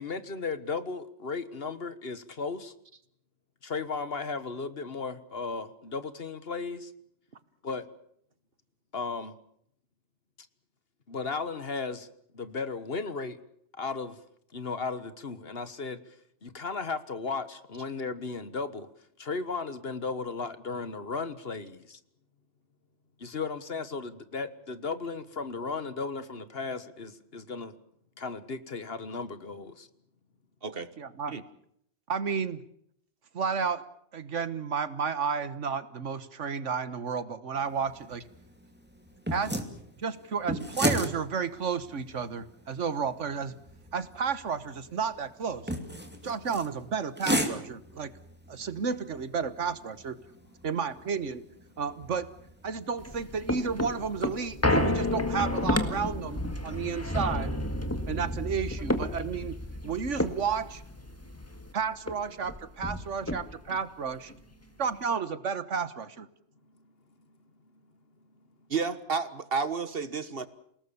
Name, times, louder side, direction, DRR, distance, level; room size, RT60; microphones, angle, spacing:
voice 1, 0.0-2.7 3.6-6.9 7.6-7.9 8.9-9.3 11.1-12.1 12.3-13.4 13.8-14.2 14.5-16.1 16.4-18.9 19.2-22.0 23.2-27.7 28.2-29.9, left 4 dB, 55° left, 13 dB, 1.6 m, -35 dB
voice 2, 31.0-31.4 32.1-32.6 33.3-33.8 34.1-38.2 39.3-39.5 40.0-43.6 43.9-45.7 46.2-48.1 48.5-50.2 50.6-51.4 51.8-52.3 52.6-57.6 58.1-59.6 59.8-60.8 61.7-64.3 64.8-66.3, right 6 dB, 80° right, 14 dB, 1.6 m, -32 dB
sound 1, 37.6-53.4, equal, 10° right, 2.8 m, -37 dB
sound 2, 53.0-61.7 62.1-62.2 62.4-63.8 64.3-64.4, left 1 dB, 10° left, 1.8 m, -31 dB
voice 3, 68.7-70.5, right 5 dB, 50° right, 13 dB, 1.6 m, -31 dB
28.5 x 18.5 x 7.1 m, 0.70 s
omnidirectional pair, 1.2 m